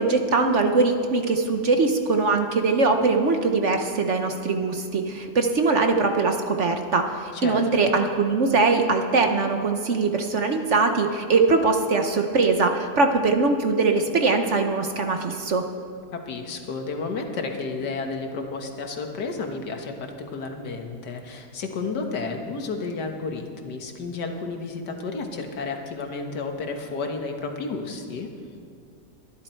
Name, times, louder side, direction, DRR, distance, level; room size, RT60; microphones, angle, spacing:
voice 1, 0.0-15.7, right 3 dB, 50° right, 5 dB, 1.1 m, -22 dB
voice 2, 7.3-7.9 16.1-28.3, left 4 dB, 80° left, 4 dB, 1.9 m, -32 dB
23.0 x 11.5 x 4.5 m, 2.3 s
omnidirectional pair, 1.8 m